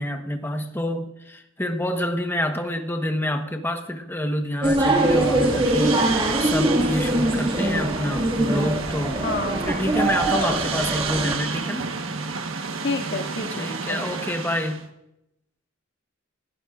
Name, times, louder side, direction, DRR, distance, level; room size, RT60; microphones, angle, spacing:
voice 1, 0.0-9.2 9.7-11.9 13.5-14.9, left 1 dB, 10° left, 5 dB, 1.1 m, -27 dB
sound 1, 4.6-11.4, right 1 dB, 25° right, 2.0 m, -23 dB
sound 2, 4.7-14.8, right 4 dB, 85° right, 1.3 m, -31 dB
voice 2, 9.2-9.7 12.8-14.0, left 3 dB, 60° left, 2 dB, 2.2 m, -29 dB
28.0 x 16.0 x 2.5 m, 0.87 s
head